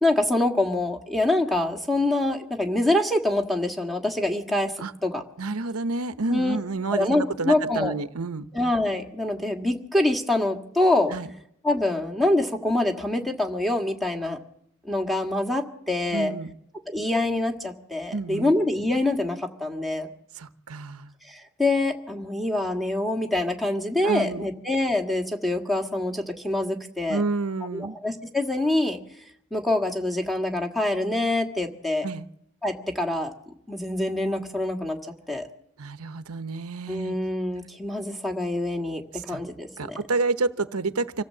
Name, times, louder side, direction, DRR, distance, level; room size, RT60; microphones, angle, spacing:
voice 1, 0.0-5.2 6.3-6.6 6.9-7.9 8.5-11.1 11.6-14.4 14.8-16.3 16.9-20.1 21.3-27.2 27.7-29.0 29.5-32.1 32.6-33.3 33.7-35.0 35.3-35.5 36.9-40.0, left 2 dB, ahead, 2 dB, 1.8 m, -25 dB
voice 2, 5.4-8.5 11.1-11.3 16.1-16.5 18.1-18.5 20.4-21.1 24.0-24.4 27.1-28.0 32.0-32.3 35.8-37.2 39.1-39.4 39.8-41.2, right 3 dB, 80° right, 11 dB, 0.9 m, -29 dB
26.0 x 15.5 x 7.7 m, 0.75 s
head